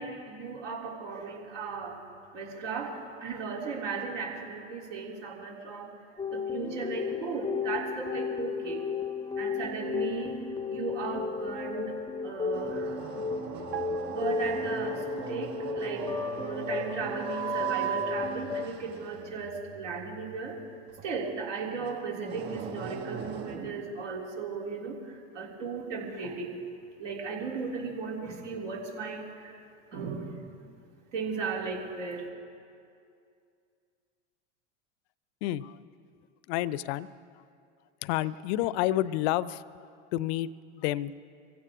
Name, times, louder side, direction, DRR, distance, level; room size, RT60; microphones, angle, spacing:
voice 1, 0.0-2.0 2.3-6.0 6.3-8.9 9.4-10.3 10.7-12.0 12.2-13.0 14.1-20.6 21.0-26.7 27.0-29.5 29.9-30.4 31.1-32.3, right 4 dB, 70° right, -2 dB, 3.6 m, -36 dB
sound 1, 6.2-18.7, left 5 dB, 10° left, 0.6 m, -34 dB
sound 2, 12.5-23.6, right 9 dB, 50° right, 5.0 m, -39 dB
sound 3, 13.7-15.4 15.6-15.8, right 16 dB, 35° right, 0.6 m, -43 dB
voice 2, 35.4-35.8 36.5-37.1 37.3-37.4 38.0-41.2, left 14 dB, 55° left, 19 dB, 0.6 m, -30 dB
24.0 x 16.0 x 3.7 m, 2.4 s
hypercardioid pair, 90°, 38 cm